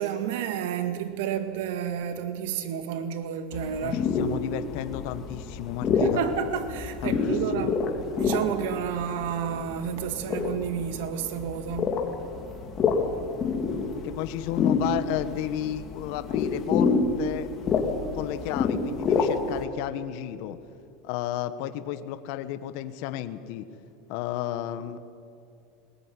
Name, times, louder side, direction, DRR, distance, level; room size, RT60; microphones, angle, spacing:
voice 1, 0.0-4.1 6.0-7.8 8.2-12.0, right 8 dB, 75° right, 9 dB, 2.0 m, -30 dB
sound 1, 3.5-19.6, left 4 dB, 30° left, 3.1 m, -28 dB
voice 2, 3.8-6.2 7.0-7.7 14.0-17.5 18.1-20.6 21.0-23.7 24.1-25.0, left 12 dB, 60° left, 10 dB, 1.3 m, -33 dB
20.5 x 19.5 x 10.0 m, 2.5 s
supercardioid pair, 140°, 0 cm